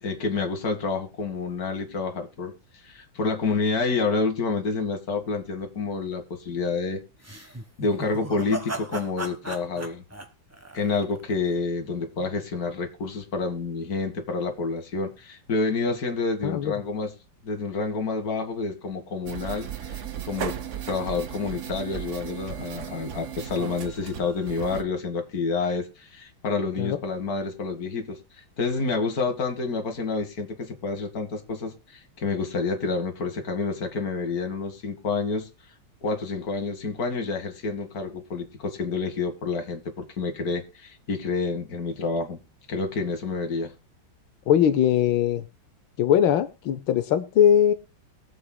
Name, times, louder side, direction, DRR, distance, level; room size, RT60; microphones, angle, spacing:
voice 1, 0.0-2.5 2.8-7.0 7.8-10.0 10.7-17.1 17.4-20.6 20.8-28.2 28.6-35.5 36.0-42.4 42.7-43.7, left 4 dB, 50° left, 2.2 m, -28 dB
sound 1, 7.2-11.4, right 1 dB, 10° right, 1.1 m, -37 dB
voice 2, 16.4-16.7 26.8-27.0 44.5-45.4 46.0-47.7, left 9 dB, 85° left, 1.6 m, -20 dB
sound 2, 19.2-24.8, right 9 dB, 50° right, 1.0 m, -36 dB
22.5 x 7.6 x 2.3 m
omnidirectional pair, 2.1 m